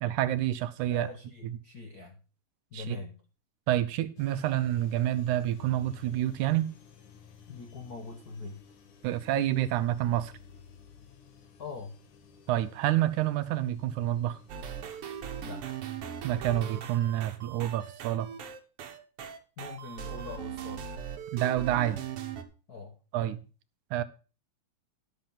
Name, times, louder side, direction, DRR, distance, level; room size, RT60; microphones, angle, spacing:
voice 1, 0.0-1.1 2.7-3.0 3.7-6.7 9.0-10.3 12.5-14.4 16.2-18.3 21.3-22.1 23.1-23.4 23.9-24.0, right 13 dB, 75° right, 2.0 m, -28 dB
voice 2, 0.9-2.2 2.7-3.2 7.5-8.6 11.6-12.0 15.4-15.7 19.6-20.9 22.7-23.0, left 4 dB, 60° left, 1.0 m, -42 dB
sound 1, 4.2-15.5, left 7 dB, 75° left, 2.9 m, -54 dB
sound 2, 14.5-22.4, right 8 dB, 60° right, 1.8 m, -39 dB
12.0 x 6.6 x 5.6 m
omnidirectional pair, 3.7 m